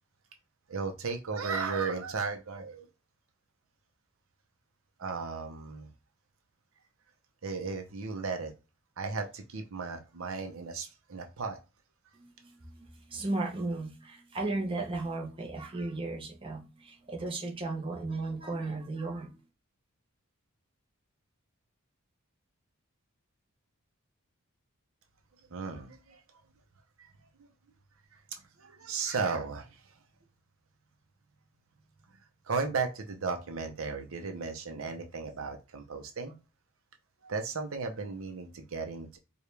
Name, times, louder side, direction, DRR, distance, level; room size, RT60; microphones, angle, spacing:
voice 1, 0.7-2.9 5.0-5.9 7.4-8.5 9.0-11.6 25.5-26.2 28.6-29.7 32.5-36.3 37.2-39.2, right 4 dB, 70° right, 0.7 m, -35 dB
voice 2, 12.2-19.4, right 2 dB, 25° right, 0.8 m, -35 dB
4.8 x 2.3 x 3.3 m
head